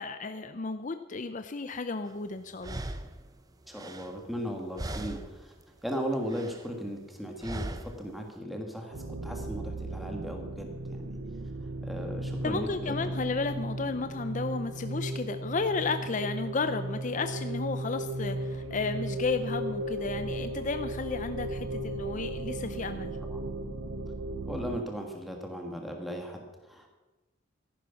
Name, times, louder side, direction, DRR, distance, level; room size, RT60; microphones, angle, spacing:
voice 1, 0.0-2.8 12.4-23.1, left 4 dB, 40° left, 9 dB, 0.6 m, -33 dB
sound 1, 2.1-2.2 2.6-4.5 4.8-5.5 5.8-6.7 7.4-8.1, right 1 dB, 20° right, 0.7 m, -39 dB
voice 2, 3.7-5.5 5.8-11.2 11.8-13.1 23.2-23.4 24.5-26.9, equal, ahead, 2 dB, 1.6 m, -37 dB
sound 2, 8.9-24.8, right 1 dB, 70° right, 0.8 m, -36 dB
14.0 x 11.0 x 5.8 m, 1.2 s
head